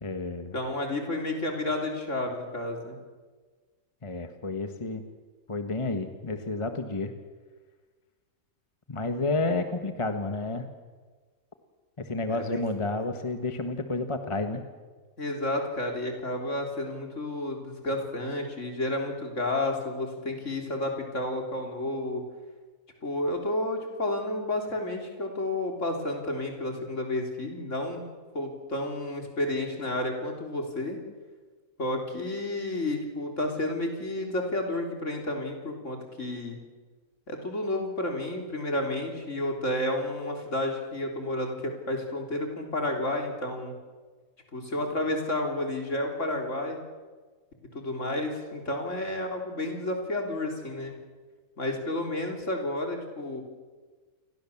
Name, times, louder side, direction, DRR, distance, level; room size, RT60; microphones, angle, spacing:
voice 1, 0.0-0.5 4.0-5.0 5.5-7.1 8.9-10.7 12.0-14.6, left 3 dB, 20° left, 7 dB, 1.5 m, -30 dB
voice 2, 0.5-3.0 12.3-12.6 15.2-22.2 23.0-28.0 28.3-31.0 31.8-36.6 37.3-43.7 44.5-46.8 47.7-50.9 51.6-53.4, left 1 dB, 60° left, 3 dB, 4.0 m, -31 dB
28.5 x 22.0 x 7.3 m, 1.4 s
omnidirectional pair, 1.5 m